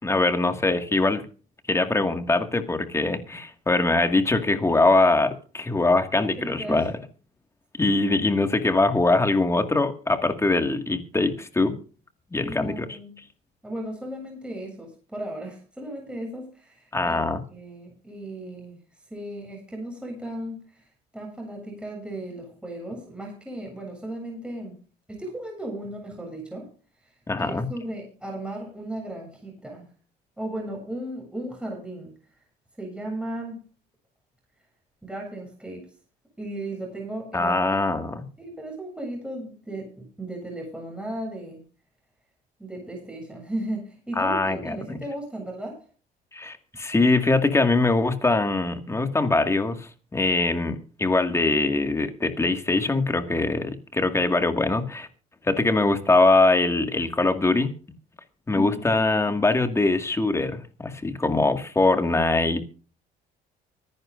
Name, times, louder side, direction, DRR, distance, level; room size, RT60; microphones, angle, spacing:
voice 1, 0.0-1.3 1.7-6.9 7.8-11.8 12.3-12.9 16.9-17.4 27.3-27.7 37.3-38.2 44.2-45.0 46.3-55.1 55.4-57.7 58.5-62.6, left 2 dB, 15° left, 7 dB, 2.0 m, -22 dB
voice 2, 6.1-6.9 12.4-13.2 13.6-17.2 17.5-18.8 19.1-20.9 21.1-24.8 25.1-26.7 27.4-29.8 30.4-32.1 32.8-33.6 35.0-35.9 36.4-37.8 38.4-41.6 42.6-45.8 58.5-59.0, right 1 dB, 5° right, 0 dB, 7.7 m, -35 dB
25.0 x 11.0 x 2.6 m, 0.38 s
cardioid pair, 110°, 17 cm